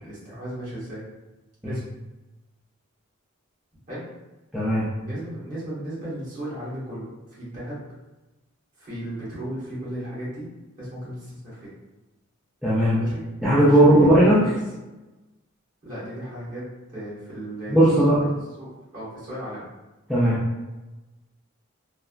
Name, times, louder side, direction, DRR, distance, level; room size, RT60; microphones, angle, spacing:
voice 1, 0.0-1.0 1.6-1.8 3.9-4.1 5.0-7.8 8.8-10.5 10.8-11.7 13.0-13.2 13.6-13.9 14.2-14.5 15.8-16.7 16.9-17.8 18.6-19.7, right 1 dB, 40° right, -10 dB, 1.4 m, -35 dB
voice 2, 4.5-4.9 12.6-13.0 13.4-14.4 17.7-18.2 20.1-20.4, right 1 dB, ahead, -11 dB, 0.4 m, -17 dB
3.2 x 2.0 x 2.4 m, 1.1 s
head